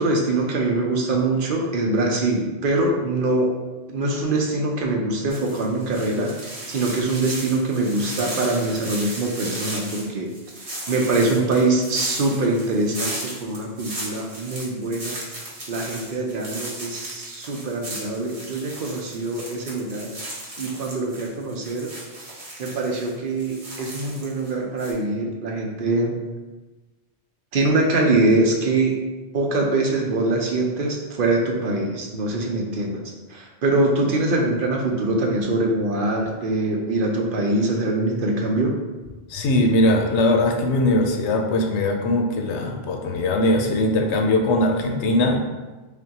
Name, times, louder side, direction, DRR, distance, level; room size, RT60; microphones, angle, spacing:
voice 1, 0.0-3.5 3.9-6.3 6.7-10.3 10.9-15.2 15.7-20.1 20.6-21.9 22.6-26.2 27.5-29.0 29.3-33.0 33.3-38.8, right 2 dB, 60° right, 0 dB, 0.7 m, -23 dB
sound 1, 5.3-24.5 24.8-24.9, right 1 dB, 85° right, 1.3 m, -36 dB
voice 2, 39.3-45.4, left 1 dB, 85° left, 3 dB, 0.9 m, -20 dB
3.6 x 3.3 x 2.8 m, 1.2 s
omnidirectional pair, 1.1 m